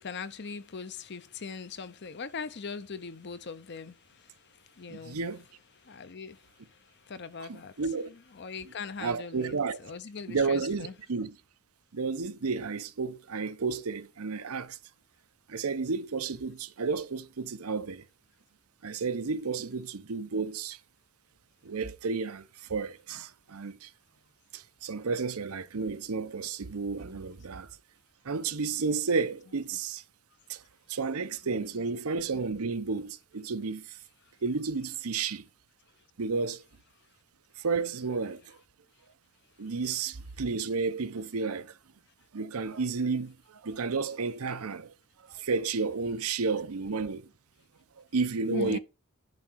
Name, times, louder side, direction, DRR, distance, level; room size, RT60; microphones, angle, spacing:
voice 1, 0.0-5.2 5.8-7.8 8.1-9.6 9.8-10.9 27.1-27.4 31.4-31.9 48.5-48.8, left 5 dB, 50° left, 0.7 m, -41 dB
voice 2, 4.9-5.4 7.5-8.1 9.0-9.8 10.3-11.4 11.9-14.8 15.5-18.0 18.8-20.8 21.6-23.9 24.5-27.7 28.2-30.0 30.5-30.6 30.9-34.0 34.4-35.5 36.2-36.6 37.6-38.6 39.6-41.8 42.3-44.9 45.3-47.3 48.0-48.8, right 4 dB, 85° right, 0.7 m, -32 dB
10.5 x 3.6 x 6.2 m
head